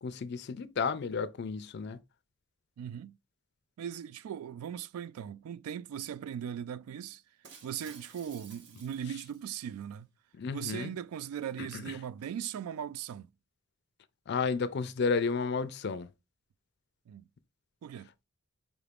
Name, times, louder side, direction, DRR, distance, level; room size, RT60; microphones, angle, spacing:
voice 1, 0.0-2.0 10.4-10.9 11.6-11.9 14.3-16.1, left 5 dB, 50° left, 0.4 m, -32 dB
voice 2, 2.8-3.2 3.8-7.2 7.6-10.1 10.5-13.3 17.1-17.2 17.8-18.1, right 9 dB, 85° right, 0.3 m, -39 dB
Shatter, 7.4-9.8, right 6 dB, 55° right, 0.7 m, -54 dB
4.8 x 2.4 x 3.4 m
head